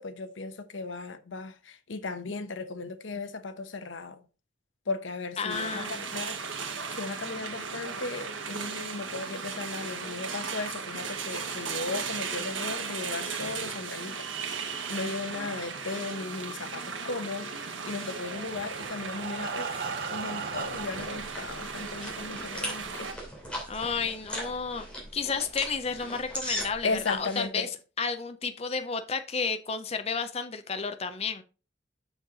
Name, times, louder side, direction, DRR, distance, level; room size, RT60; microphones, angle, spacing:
voice 1, 0.0-4.2 4.9-6.4 6.9-14.3 14.9-17.5 17.8-19.8 20.1-23.1 26.8-27.7, left 3 dB, 80° left, 0.9 m, -36 dB
voice 2, 5.4-6.0 23.7-24.9 25.1-27.7 28.0-31.4, left 5 dB, 30° left, 0.6 m, -32 dB
sound 1, 5.5-23.1, right 5 dB, 85° right, 1.4 m, -36 dB
Breathing, 18.3-21.2 22.0-22.1 22.4-22.5 23.0-23.1, right 5 dB, 50° right, 0.7 m, -37 dB
sound 2, 20.3-27.4, equal, 5° left, 2.7 m, -39 dB
6.5 x 6.3 x 3.9 m
head